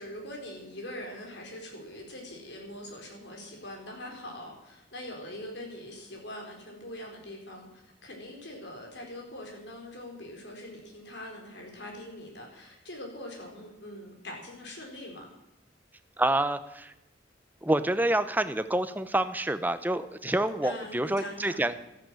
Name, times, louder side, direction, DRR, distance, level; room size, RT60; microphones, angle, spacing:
voice 1, 0.0-15.3 20.6-21.6, left 1 dB, 65° left, 1 dB, 4.3 m, -43 dB
voice 2, 16.2-16.9 17.6-21.8, right 1 dB, 10° right, 11 dB, 0.6 m, -27 dB
13.0 x 10.5 x 7.6 m, 0.91 s
head